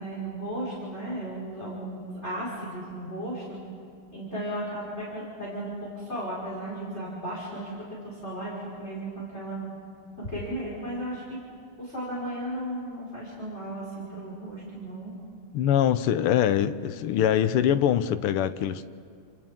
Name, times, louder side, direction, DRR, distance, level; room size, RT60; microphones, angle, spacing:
voice 1, 0.0-3.6 4.1-7.7 8.0-9.8 10.2-11.4 11.8-15.1, right 1 dB, 30° left, -7 dB, 5.1 m, -35 dB
voice 2, 15.5-18.8, left 10 dB, 85° left, 11 dB, 1.7 m, -23 dB
29.5 x 26.5 x 3.7 m, 2.3 s
omnidirectional pair, 2.4 m